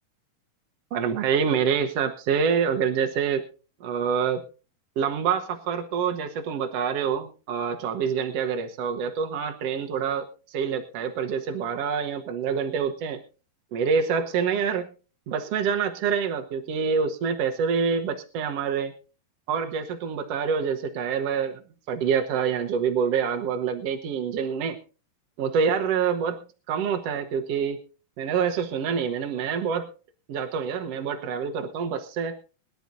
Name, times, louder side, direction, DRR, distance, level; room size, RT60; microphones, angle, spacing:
voice 1, 0.9-3.4 3.8-4.4 5.0-13.2 13.7-14.9 15.3-18.9 19.5-21.6 21.9-24.8 25.4-26.4 26.7-27.8 28.2-29.9 30.3-32.4, right 6 dB, 65° right, 5 dB, 1.5 m, -26 dB
22.5 x 12.0 x 2.7 m, 0.36 s
omnidirectional pair, 4.3 m